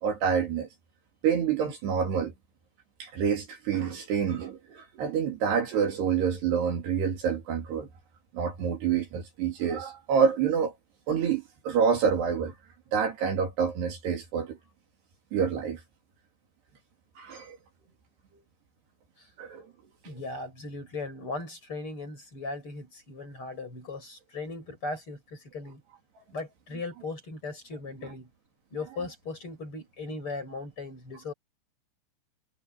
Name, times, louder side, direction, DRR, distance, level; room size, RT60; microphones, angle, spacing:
voice 1, 0.0-0.7 1.2-2.3 3.0-7.9 8.3-10.7 11.1-12.5 12.9-14.6 15.3-15.8 17.2-17.6 19.4-19.7 20.0-20.1, right 7 dB, 60° right, 4.7 m, -27 dB
voice 2, 20.0-25.8 26.3-28.3 28.7-31.3, left 3 dB, 25° left, 8.5 m, -38 dB
omnidirectional pair, 5.5 m